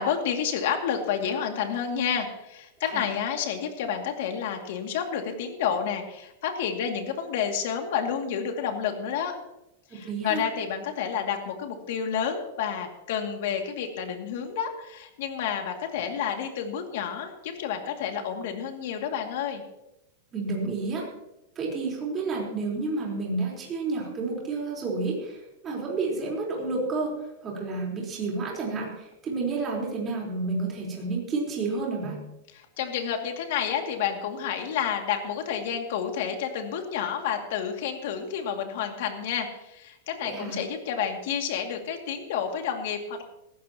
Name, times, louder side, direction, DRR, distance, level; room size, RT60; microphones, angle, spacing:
voice 1, 0.0-9.3 9.9-19.6 32.5-43.2, left 8 dB, 60° left, 4 dB, 2.4 m, -30 dB
voice 2, 9.9-10.5 20.3-21.1 21.6-25.4 25.6-27.2 27.4-32.2 40.2-40.6, right 3 dB, 20° right, -3 dB, 4.1 m, -30 dB
19.0 x 15.0 x 3.0 m, 0.89 s
supercardioid pair, 170°, 0 cm